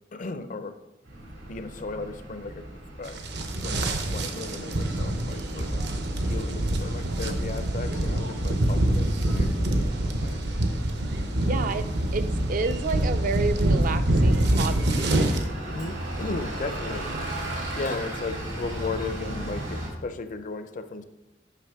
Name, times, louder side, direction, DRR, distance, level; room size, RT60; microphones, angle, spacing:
voice 1, 0.1-0.8 1.5-2.7 3.0-3.2 3.6-5.9 6.2-10.4 11.4-11.8 15.6-17.1 17.7-21.0, left 4 dB, 45° left, 10 dB, 0.5 m, -36 dB
Bus, 1.0-19.9, right 1 dB, 85° right, 2.5 m, -37 dB
sound 1, 3.1-15.4, right 1 dB, 65° right, 0.8 m, -25 dB
voice 2, 11.4-15.1, right 4 dB, 50° right, 10 dB, 0.4 m, -30 dB
8.3 x 5.8 x 3.5 m, 0.99 s
head